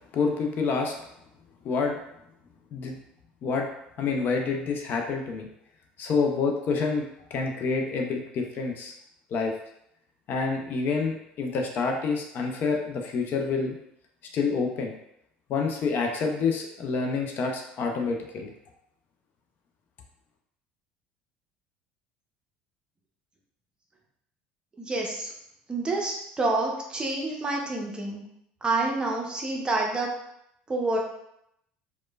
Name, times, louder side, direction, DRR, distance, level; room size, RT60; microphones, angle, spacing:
voice 1, 0.1-0.9 1.6-2.0 2.7-3.0 3.4-3.7 4.0-5.5 6.0-7.0 7.3-8.9 9.3-9.5 10.3-13.8 14.3-14.9 15.5-18.5, left 4 dB, 50° left, 2 dB, 0.4 m, -27 dB
voice 2, 24.8-25.3 25.7-28.2 28.6-30.1 30.7-31.0, right 2 dB, 20° right, 0 dB, 0.6 m, -28 dB
2.9 x 2.1 x 2.2 m, 0.78 s
supercardioid pair, 90°, 4 cm